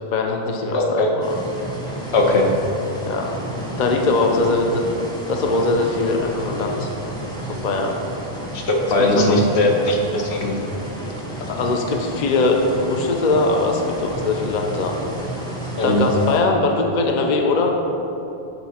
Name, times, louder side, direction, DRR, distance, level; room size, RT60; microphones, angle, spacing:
voice 1, 0.1-1.3 3.1-4.9 5.3-6.9 7.4-8.0 9.1-9.5 11.4-15.0 15.7-17.7, left 3 dB, 50° left, 2 dB, 0.6 m, -21 dB
voice 2, 0.7-1.1 2.1-2.5 8.5-10.5 15.8-16.0, left 2 dB, 75° left, 0 dB, 1.1 m, -19 dB
sound 1, 1.2-16.4, right 1 dB, 5° left, 0.8 m, -32 dB
8.3 x 4.0 x 4.2 m, 2.9 s
omnidirectional pair, 1.1 m